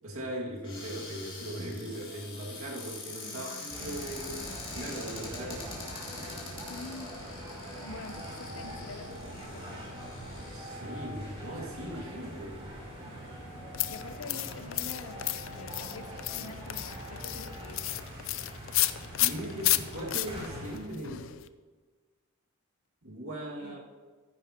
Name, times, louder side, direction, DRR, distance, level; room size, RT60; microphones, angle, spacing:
voice 1, 0.0-5.7 10.5-12.6 19.2-21.3 23.0-23.8, right 1 dB, 80° right, -2 dB, 2.2 m, -39 dB
Cupboard open or close, 0.6-11.0 11.7-11.8 12.0-12.4, left 3 dB, 25° left, 2.8 m, -44 dB
voice 2, 3.2-4.1 6.7-7.2 7.8-10.0 13.9-17.8 23.6-23.8, left 3 dB, 85° left, 9 dB, 0.7 m, -46 dB
sound 1, 3.7-20.8, equal, 30° right, 3.2 m, -43 dB
sound 2, 13.7-21.5, left 16 dB, 60° left, 0.4 m, -32 dB
14.5 x 10.0 x 3.0 m, 1.4 s
head